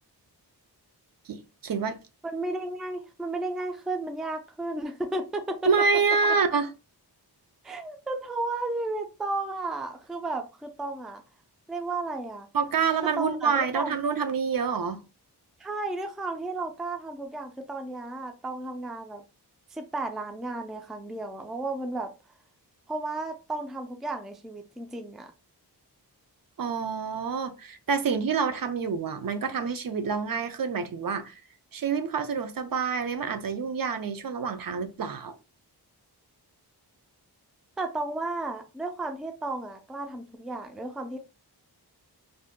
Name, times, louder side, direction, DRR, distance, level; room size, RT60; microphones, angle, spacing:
voice 1, 1.3-2.0 5.6-6.7 12.5-15.0 26.6-31.4 31.7-35.4, right 5 dB, 55° right, 0.5 m, -27 dB
voice 2, 2.2-5.7 7.6-11.2 11.7-12.5 13.2-13.9 15.6-19.2 19.7-22.1 22.9-25.3 37.8-41.2, right 2 dB, ahead, 0.3 m, -33 dB
2.6 x 2.2 x 3.5 m
wide cardioid pair, 125°, 40 cm